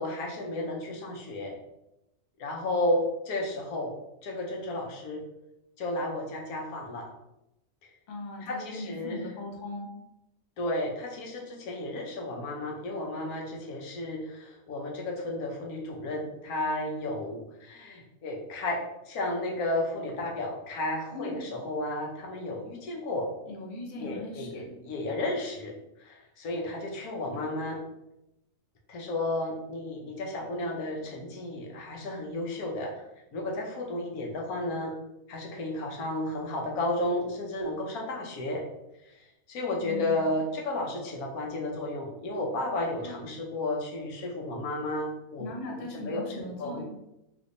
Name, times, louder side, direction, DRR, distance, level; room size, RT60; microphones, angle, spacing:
voice 1, 0.0-1.5 2.4-3.9 4.2-5.2 5.8-7.1 8.4-9.2 10.6-18.8 19.1-23.3 24.0-25.7 26.0-27.8 28.9-33.0 33.3-34.9 35.3-38.6 39.1-45.5 45.9-46.8, left 1 dB, 90° left, -1 dB, 1.2 m, -33 dB
voice 2, 8.1-9.9 21.1-21.4 23.5-24.8 39.8-40.3 43.0-43.2 45.4-46.8, left 1 dB, 45° left, -1 dB, 0.6 m, -39 dB
3.5 x 2.9 x 2.5 m, 0.87 s
omnidirectional pair, 1.5 m